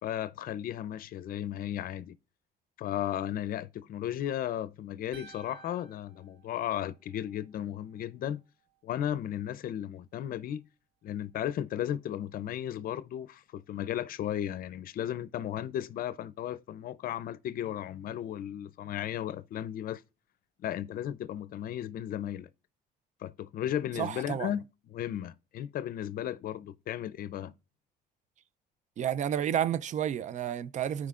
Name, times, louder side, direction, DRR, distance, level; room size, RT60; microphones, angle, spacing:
voice 1, 0.0-2.1 2.8-8.4 8.8-10.7 11.0-20.0 20.6-22.5 23.2-24.6 24.9-27.5, left 11 dB, 60° left, 0.6 m, -35 dB
sound 1, 5.1-7.4, right 5 dB, 85° right, 1.9 m, -54 dB
voice 2, 24.0-24.5 29.0-31.1, right 10 dB, 45° right, 0.5 m, -31 dB
13.5 x 4.9 x 2.5 m
cardioid pair, 110°, 17 cm